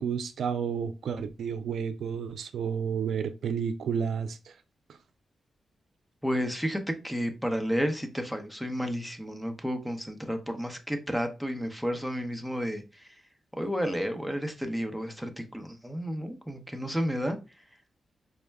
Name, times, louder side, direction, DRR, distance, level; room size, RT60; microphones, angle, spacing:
voice 1, 0.0-4.6, right 7 dB, 80° right, 0.4 m, -31 dB
voice 2, 6.2-13.2 13.5-17.4, equal, ahead, 0.7 m, -31 dB
5.3 x 2.1 x 3.4 m
wide cardioid pair, 110°, 0 cm